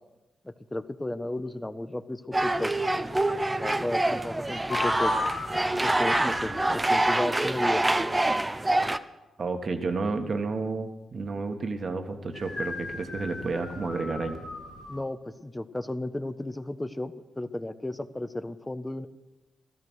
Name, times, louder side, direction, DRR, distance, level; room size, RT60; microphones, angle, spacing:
voice 1, 0.4-2.7 3.6-5.1 5.8-7.9 14.9-19.1, left 1 dB, 15° left, 11 dB, 1.2 m, -33 dB
sound 1, 2.3-9.0, right 2 dB, 20° right, 0.9 m, -26 dB
sound 2, 4.7-6.7 12.3-15.0, left 3 dB, 75° left, 2.5 m, -35 dB
voice 2, 9.4-14.4, right 3 dB, 55° right, 6 dB, 1.8 m, -31 dB
16.5 x 13.5 x 6.5 m, 1.0 s
hypercardioid pair, 40°, 0 cm